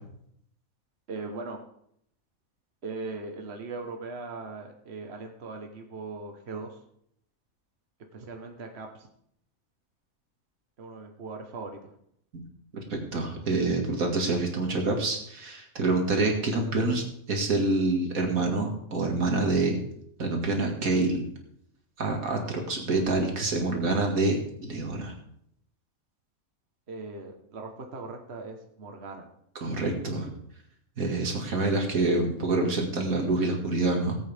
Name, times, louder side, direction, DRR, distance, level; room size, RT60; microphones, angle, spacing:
voice 1, 1.1-1.6 2.8-6.8 8.1-9.1 10.8-11.8 26.9-29.2, right 3 dB, 50° right, 3 dB, 1.5 m, -39 dB
voice 2, 12.9-19.8 20.2-21.3 22.0-25.1 29.6-30.3 31.0-34.2, right 2 dB, 90° right, 2 dB, 2.5 m, -27 dB
19.0 x 8.3 x 3.5 m, 0.71 s
omnidirectional pair, 1.4 m